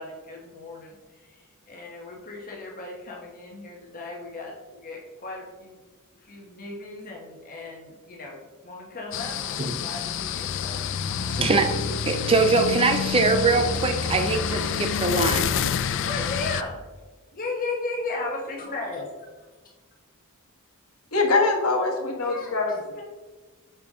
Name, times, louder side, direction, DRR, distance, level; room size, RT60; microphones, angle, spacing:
voice 1, 0.0-5.8 6.1-11.5 11.8-12.3 16.0-16.8 17.3-19.3 22.2-23.0, left 3 dB, 40° left, -1 dB, 1.0 m, -36 dB
sound 1, 9.1-16.6, left 7 dB, 60° left, 0.4 m, -28 dB
voice 2, 11.4-11.7 12.0-15.4, right 3 dB, 25° right, 6 dB, 0.5 m, -22 dB
voice 3, 21.1-22.7, left 3 dB, 85° left, 1 dB, 1.3 m, -23 dB
6.8 x 5.1 x 3.6 m, 1.3 s
head